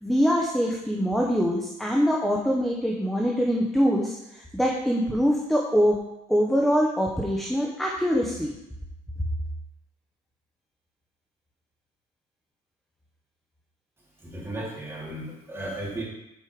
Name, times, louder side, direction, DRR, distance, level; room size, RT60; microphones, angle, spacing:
voice 1, 0.0-6.0 6.3-8.5, equal, ahead, -2 dB, 1.1 m, -24 dB
voice 2, 14.2-16.0, right 1 dB, 15° right, -6 dB, 3.5 m, -35 dB
7.9 x 5.5 x 5.0 m, 0.87 s
cardioid pair, 110°, 17 cm